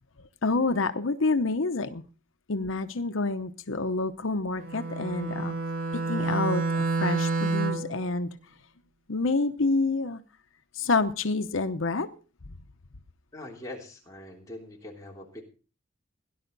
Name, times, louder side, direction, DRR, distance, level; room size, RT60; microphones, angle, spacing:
voice 1, 0.4-2.0 2.5-5.5 5.9-8.3 9.1-10.2 10.7-12.1, left 3 dB, 85° left, 9 dB, 0.9 m, -28 dB
Bowed string instrument, 4.6-8.0, right 3 dB, 85° right, 1.7 m, -28 dB
voice 2, 13.3-15.4, left 1 dB, 15° left, -2 dB, 3.4 m, -42 dB
17.5 x 11.0 x 4.0 m, 0.35 s
head